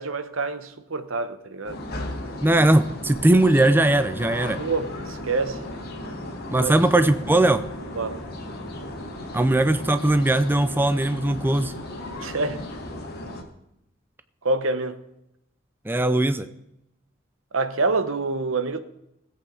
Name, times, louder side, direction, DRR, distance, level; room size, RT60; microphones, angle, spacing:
voice 1, 0.0-1.8 4.6-5.7 6.6-7.0 7.9-8.2 12.2-12.7 14.4-15.0 17.5-18.8, right 3 dB, 80° right, 0.9 m, -27 dB
sound 1, 1.6-13.4, left 1 dB, 50° left, 2.1 m, -35 dB
voice 2, 2.4-4.6 6.5-7.6 9.3-11.7 15.9-16.5, right 1 dB, 10° right, 0.4 m, -19 dB
19.0 x 8.2 x 3.8 m
head